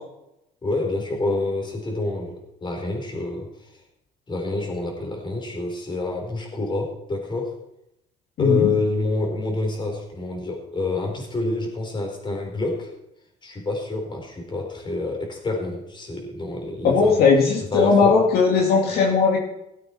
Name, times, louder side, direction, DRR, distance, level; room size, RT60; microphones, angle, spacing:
voice 1, 0.6-2.4 2.6-3.5 4.3-7.6 8.4-12.9 13.4-17.2 17.7-18.2, left 3 dB, 25° left, 1 dB, 4.1 m, -27 dB
voice 2, 8.4-8.7 16.8-19.4, left 4 dB, 65° left, -1 dB, 2.5 m, -18 dB
17.5 x 8.7 x 4.5 m, 0.84 s
cardioid pair, 110°, 17 cm